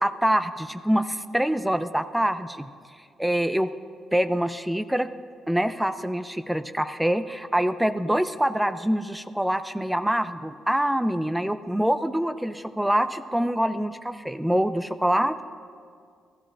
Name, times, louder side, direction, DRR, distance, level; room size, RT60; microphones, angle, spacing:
voice 1, 0.0-2.7 3.2-3.7 4.1-5.1 5.5-15.4, equal, 5° right, 12 dB, 0.3 m, -25 dB
15.0 x 12.0 x 2.5 m, 2.2 s
cardioid pair, 90°, 0 cm